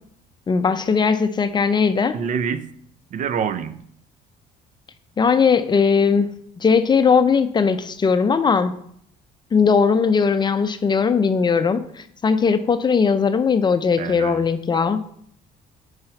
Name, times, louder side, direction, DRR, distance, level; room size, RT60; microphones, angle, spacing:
voice 1, 0.5-2.2 5.2-6.3 6.6-8.7 9.5-15.0, left 5 dB, 25° left, 11 dB, 0.5 m, -19 dB
voice 2, 2.1-2.7 3.1-3.8 14.0-14.5, right 7 dB, 50° right, 13 dB, 0.5 m, -26 dB
5.6 x 4.8 x 4.4 m, 0.65 s
cardioid pair, 110°, 17 cm